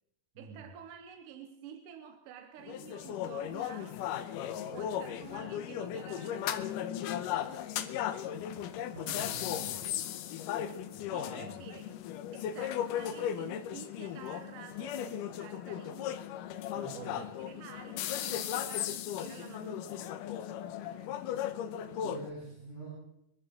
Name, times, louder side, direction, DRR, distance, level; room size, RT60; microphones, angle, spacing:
voice 1, 0.4-4.0 4.7-7.1 11.1-12.0 12.3-16.2 16.9-20.2, right 8 dB, 70° right, 6 dB, 2.3 m, -49 dB
sound 1, 2.6-22.3, left 10 dB, 75° left, 2.1 m, -36 dB
voice 2, 8.7-9.9 10.9-11.5 16.6-17.2 22.0-22.9, right 2 dB, 25° right, -9 dB, 8.2 m, -46 dB
25.0 x 12.0 x 3.7 m, 0.80 s
omnidirectional pair, 4.3 m